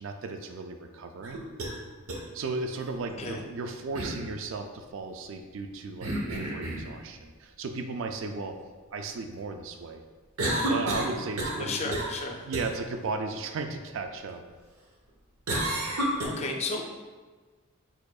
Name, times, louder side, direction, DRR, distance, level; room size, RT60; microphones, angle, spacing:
voice 1, 0.0-1.4 2.3-8.6 8.9-10.0 10.7-11.9 12.3-14.4, right 3 dB, 60° right, 6 dB, 0.3 m, -35 dB
sound 1, 1.2-1.7 2.1-2.2 3.9-4.2 6.0-6.9 10.4-11.7 11.9-12.2 12.5-12.7 15.5-16.3, right 1 dB, 85° right, 0.9 m, -30 dB
voice 2, 11.6-12.4 16.2-16.9, left 3 dB, 30° left, 2 dB, 0.4 m, -33 dB
4.9 x 4.5 x 2.3 m, 1.4 s
head